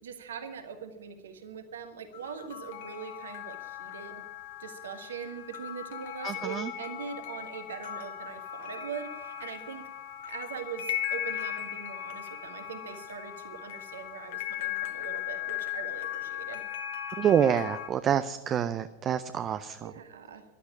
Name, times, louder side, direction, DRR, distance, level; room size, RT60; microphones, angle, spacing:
voice 1, 0.0-4.2 4.6-9.9 10.2-16.6 19.8-20.4, right 7 dB, 65° right, 7 dB, 1.7 m, -42 dB
sound 1, 2.1-17.9, left 11 dB, 55° left, 1.5 m, -38 dB
voice 2, 6.2-6.7 17.2-19.9, right 8 dB, 30° right, 11 dB, 0.6 m, -27 dB
13.5 x 12.0 x 8.7 m, 1.0 s
figure-of-eight pair, 90°, 0 cm